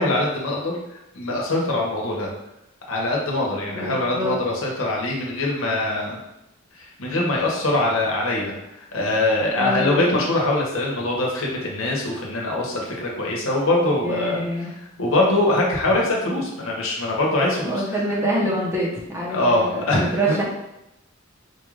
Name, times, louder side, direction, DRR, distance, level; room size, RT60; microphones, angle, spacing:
voice 1, 0.0-2.3 2.9-6.2 6.8-8.5 8.9-14.5 15.0-17.8 19.3-20.4, left 2 dB, 85° left, -2 dB, 1.0 m, -23 dB
voice 2, 3.7-4.4 9.6-10.1 14.0-14.7 17.6-20.4, right 1 dB, 15° right, -4 dB, 0.8 m, -25 dB
4.4 x 2.5 x 3.2 m, 0.88 s
head